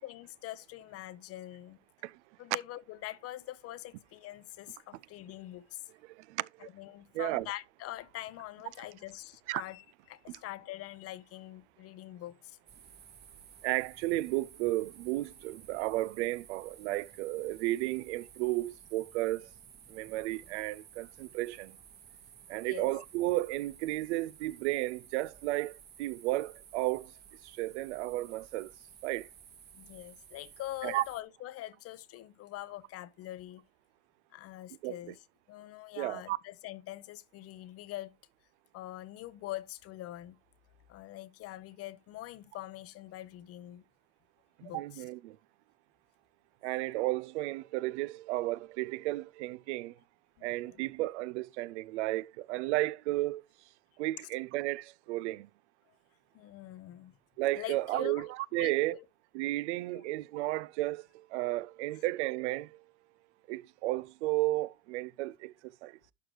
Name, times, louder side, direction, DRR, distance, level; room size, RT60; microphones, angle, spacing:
voice 1, 0.0-1.8 2.4-5.8 6.6-12.6 22.6-22.9 29.7-33.6 34.3-35.2 35.5-38.1 38.7-40.4 40.9-43.8 44.6-45.0 50.4-50.8 56.3-57.1 57.5-58.3 58.6-59.1 59.9-60.0, left 15 dB, 40° left, 0.7 m, -44 dB
voice 2, 6.2-6.5 7.1-7.5 9.5-9.6 13.6-19.5 19.9-21.8 22.5-27.1 27.6-28.7 29.0-29.3 30.8-31.0 34.8-34.9 36.0-36.4 44.7-45.4 46.6-49.9 50.4-53.4 54.0-55.5 57.4-59.0 59.3-62.7 63.5-65.9, right 18 dB, 65° right, 0.5 m, -33 dB
sound 1, 12.7-31.2, right 8 dB, 25° right, 1.0 m, -55 dB
11.5 x 4.7 x 3.1 m
hypercardioid pair, 85°, 37 cm